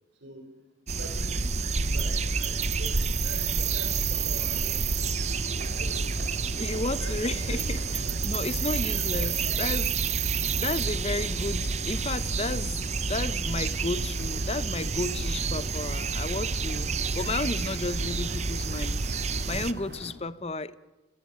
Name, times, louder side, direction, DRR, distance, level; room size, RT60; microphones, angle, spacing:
sound 1, 0.9-19.7, right 4 dB, 35° right, 0.8 m, -29 dB
voice 1, 0.9-8.2 8.9-9.6 11.5-11.7, right 1 dB, 85° right, 3.8 m, -45 dB
sound 2, 3.4-20.1, right 1 dB, 60° right, 3.1 m, -46 dB
voice 2, 6.6-20.7, left 2 dB, 35° left, 0.8 m, -33 dB
30.0 x 18.5 x 8.5 m
head